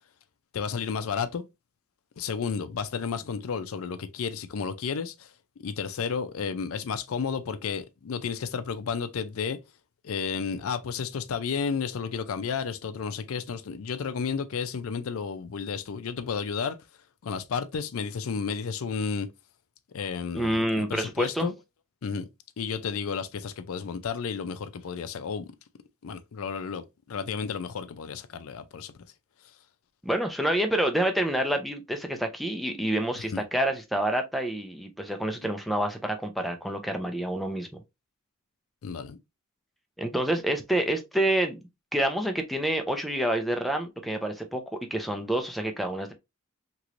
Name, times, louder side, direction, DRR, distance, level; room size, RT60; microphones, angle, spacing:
voice 1, 0.5-1.4 2.2-5.3 5.6-9.6 10.0-16.8 17.2-19.3 19.9-21.5 22.0-22.3 22.6-25.5 26.0-28.9 33.3-33.4 38.8-39.2, left 6 dB, 75° left, 0.4 m, -32 dB
voice 2, 20.3-21.5 30.0-37.7 40.0-41.6 41.9-46.1, right 1 dB, ahead, 0.5 m, -28 dB
3.0 x 3.0 x 2.5 m
head